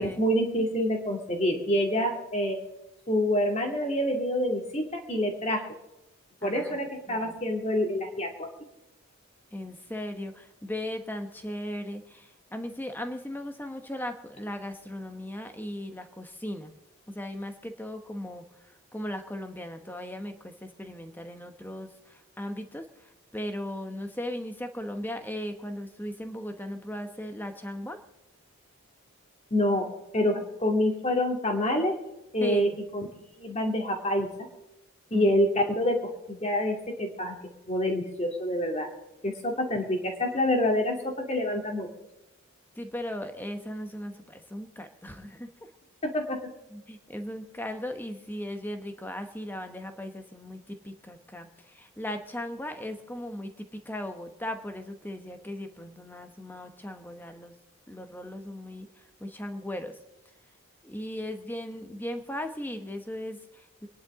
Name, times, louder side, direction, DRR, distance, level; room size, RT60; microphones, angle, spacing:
voice 1, 0.0-2.6 3.1-5.6 6.4-8.5 29.5-29.9 30.1-31.9 32.3-33.1 33.4-34.3 35.1-37.4 37.7-38.9 39.2-41.9 46.0-46.4, left 1 dB, 30° left, 2 dB, 2.3 m, -27 dB
voice 2, 6.4-7.4 9.5-16.7 17.1-28.0 32.4-32.8 35.1-35.3 42.7-45.5 46.7-57.6 57.9-60.0 60.8-63.9, left 1 dB, 10° left, 6 dB, 1.1 m, -37 dB
25.0 x 11.0 x 3.7 m, 0.92 s
head